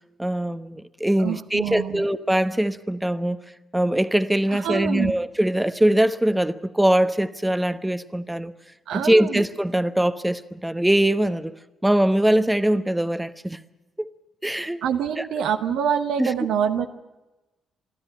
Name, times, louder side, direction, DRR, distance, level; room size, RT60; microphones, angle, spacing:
voice 1, 0.2-3.4 3.7-8.5 8.9-11.5 11.8-13.6 14.0-14.1 14.4-14.8 15.2-15.3 16.2-16.3, right 1 dB, 10° right, 1.0 m, -22 dB
voice 2, 1.2-2.0 4.5-5.1 8.9-9.4 14.8-16.9, right 8 dB, 70° right, 1.1 m, -25 dB
23.5 x 13.0 x 9.9 m
hypercardioid pair, 45°, 0 cm